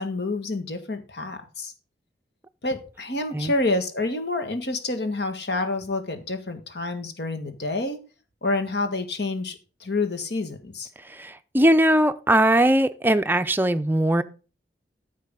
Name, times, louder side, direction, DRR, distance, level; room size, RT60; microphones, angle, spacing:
voice 1, 0.0-1.7 2.6-8.0 8.4-10.9, left 2 dB, 70° left, 1.8 m, -28 dB
voice 2, 11.1-14.2, right 1 dB, 10° right, 0.6 m, -20 dB
10.0 x 7.5 x 3.7 m
head